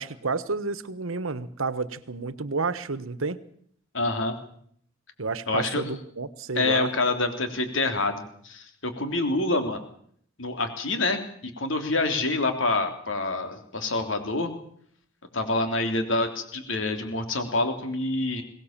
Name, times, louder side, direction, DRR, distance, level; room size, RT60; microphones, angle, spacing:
voice 1, 0.0-3.4 5.2-6.9, right 4 dB, 80° right, 15 dB, 1.3 m, -30 dB
voice 2, 3.9-4.3 5.5-5.8 6.5-9.8 10.4-14.5 15.3-18.4, left 2 dB, 65° left, 6 dB, 3.3 m, -27 dB
22.5 x 18.5 x 7.4 m, 0.65 s
head